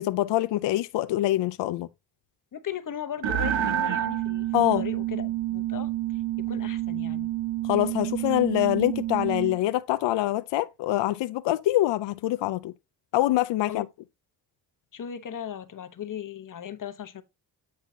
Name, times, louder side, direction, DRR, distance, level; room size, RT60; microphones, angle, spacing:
voice 1, 0.0-1.9 4.5-4.8 7.7-12.7 13.1-13.9, left 15 dB, 70° left, 0.5 m, -25 dB
voice 2, 2.5-7.3 13.7-13.9 14.9-17.2, left 9 dB, 45° left, 1.0 m, -37 dB
sound 1, 3.2-9.6, right 13 dB, 80° right, 1.2 m, -29 dB
8.6 x 5.5 x 2.7 m
cardioid pair, 100°, 44 cm